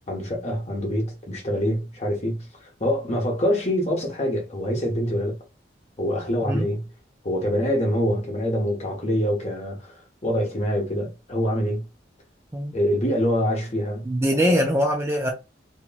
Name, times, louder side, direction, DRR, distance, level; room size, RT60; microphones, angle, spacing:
voice 1, 0.1-5.4 6.0-6.9 7.2-10.0 10.2-11.8 12.7-14.1, equal, 35° left, 1.0 m, -25 dB
voice 2, 14.1-15.3, equal, 15° right, 0.5 m, -22 dB
3.0 x 2.8 x 2.2 m
head